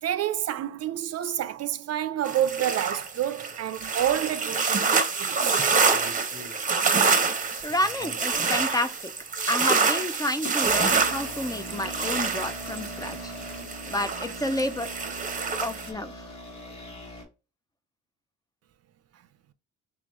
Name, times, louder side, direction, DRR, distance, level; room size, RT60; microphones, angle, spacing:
voice 1, 0.0-5.6, right 11 dB, 55° right, 0.5 m, -29 dB
sound 1, 2.2-15.9, right 5 dB, 25° right, 0.8 m, -26 dB
sound 2, 5.5-7.0 7.3-8.7 9.4-9.6 10.4-17.2, equal, 65° left, 1.7 m, -41 dB
voice 2, 7.6-9.1 9.5-13.3 13.9-14.9 15.6-16.3, left 1 dB, 15° left, 0.5 m, -30 dB
3.7 x 3.0 x 3.0 m
cardioid pair, 90°, 30 cm